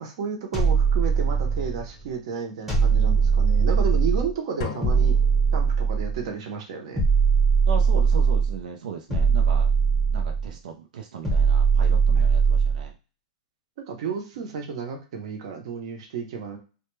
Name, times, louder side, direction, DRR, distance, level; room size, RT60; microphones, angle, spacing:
voice 1, 0.0-5.1 5.5-7.0 12.2-12.3 13.8-16.6, right 6 dB, 45° right, 3 dB, 0.7 m, -32 dB
sound 1, 0.5-1.9 2.7-4.3 4.8-6.2 7.0-8.6 9.1-10.5 11.2-12.9, right 5 dB, 5° right, 0.9 m, -20 dB
sound 2, 4.6-6.3, left 7 dB, 40° left, 0.4 m, -38 dB
voice 2, 7.7-9.7 10.1-12.9, right 6 dB, 85° right, 3 dB, 0.5 m, -37 dB
2.2 x 2.1 x 3.0 m, 0.35 s
supercardioid pair, 170°, 4 cm